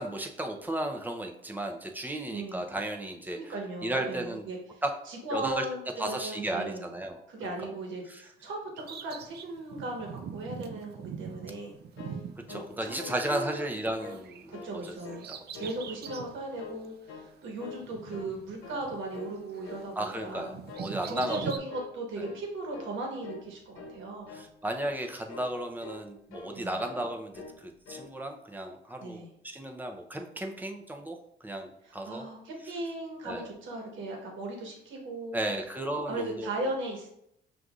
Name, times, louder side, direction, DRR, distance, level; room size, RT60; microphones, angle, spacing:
voice 1, 0.0-3.5 3.8-4.4 4.8-4.9 5.3-5.6 6.0-7.2 7.6-7.7 8.1-8.3 12.4-15.0 15.3-15.4 20.0-21.5 22.2-22.3 24.3-31.2 31.4-32.2 33.2-33.5 35.3-36.5, right 1 dB, 10° right, 3 dB, 0.6 m, -34 dB
voice 2, 2.3-2.7 3.3-6.8 7.3-11.7 12.5-13.5 14.5-15.3 15.5-20.5 21.0-24.3 26.5-26.8 29.0-29.3 31.8-35.4 36.1-37.1, right 2 dB, 75° right, 1 dB, 1.2 m, -37 dB
Bird vocalization bird call bird song, 8.8-13.4 13.7-16.4 16.8-16.9 17.8-19.3 19.6-21.6, right 7 dB, 55° right, 0.4 m, -43 dB
sound 1, 11.7-13.2 13.5-13.8 14.0-14.7 15.0-15.8 16.1-16.8 17.1-17.3 17.6-18.4 18.6-18.9 19.1-19.4 19.6-20.4 20.7-20.9 21.2-21.4 21.7-22.0 22.2-22.5 22.7-22.9 23.2-23.5 23.7-24.0 24.2-24.5 24.8-25.0 25.3-25.5 25.8-26.6 26.8-27.0 27.3-27.6 27.9-28.1, left 4 dB, 85° left, 0.8 m, -45 dB
6.2 x 2.5 x 2.4 m, 0.74 s
cardioid pair, 90°, 20 cm